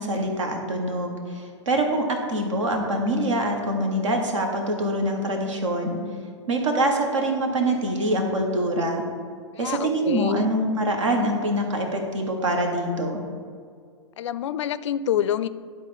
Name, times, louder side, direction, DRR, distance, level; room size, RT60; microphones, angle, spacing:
voice 1, 0.0-6.0 6.5-9.0 9.6-13.2, right 1 dB, 75° right, 3 dB, 1.5 m, -24 dB
voice 2, 9.6-10.5 14.2-15.5, left 10 dB, 70° left, 15 dB, 0.4 m, -27 dB
10.5 x 4.3 x 5.2 m, 2.1 s
hypercardioid pair, 110°, 16 cm